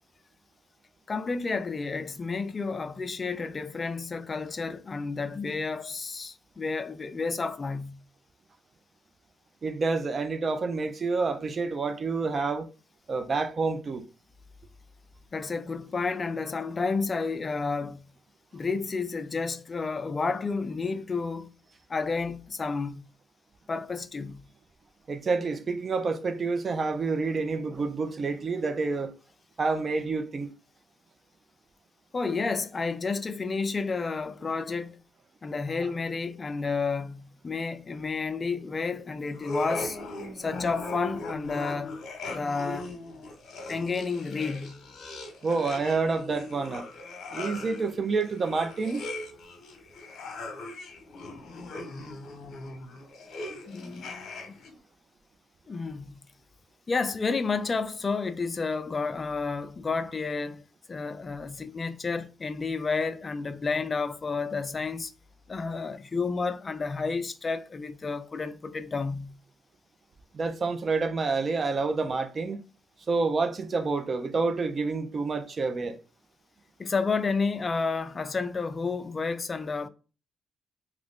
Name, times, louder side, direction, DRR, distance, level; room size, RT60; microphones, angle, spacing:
voice 1, 1.1-8.0 15.3-18.1 18.5-21.5 21.9-23.0 23.7-24.5 32.1-35.0 35.4-40.0 40.3-42.0 42.3-42.9 43.7-44.8 53.7-54.5 55.7-56.2 56.9-60.6 60.9-65.1 65.5-69.4 76.8-79.9, left 4 dB, 35° left, 0.4 m, -31 dB
voice 2, 9.6-12.7 13.1-14.0 25.1-29.1 29.6-30.5 45.4-46.8 47.3-49.0 70.3-72.6 73.1-76.0, right 4 dB, 40° right, 0.5 m, -28 dB
sound 1, 39.3-54.7, left 2 dB, 65° left, 1.0 m, -39 dB
3.0 x 2.5 x 3.5 m
cardioid pair, 90°, 0 cm